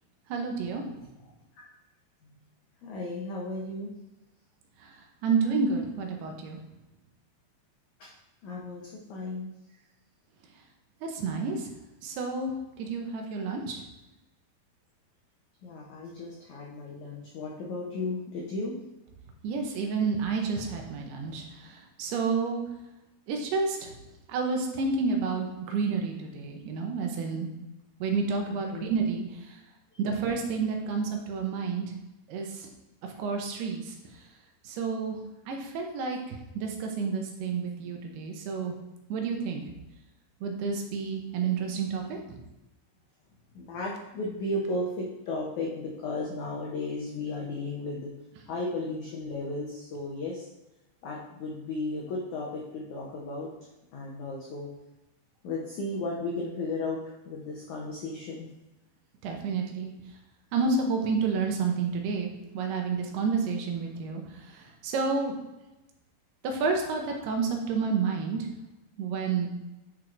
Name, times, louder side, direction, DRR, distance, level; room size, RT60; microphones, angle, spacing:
voice 1, 0.3-0.8 5.2-6.6 11.0-11.6 12.0-13.8 19.4-22.6 23.3-23.9 24.3-27.5 28.0-29.2 30.0-31.8 32.3-32.7 33.2-33.8 34.7-35.2 35.5-38.8 39.1-39.6 40.4-42.2 59.2-59.9 60.5-64.2 64.8-65.3 66.4-68.5 69.0-69.5, right 4 dB, 80° right, 2 dB, 2.8 m, -30 dB
voice 2, 2.8-3.9 8.0-8.1 8.4-9.5 15.6-18.7 28.5-28.9 29.9-30.0 43.5-48.1 48.5-50.5 51.0-53.5 53.9-54.7 55.4-57.0 57.2-58.5, left 2 dB, 90° left, -3 dB, 1.6 m, -34 dB
10.0 x 4.6 x 2.5 m, 0.98 s
omnidirectional pair, 4.7 m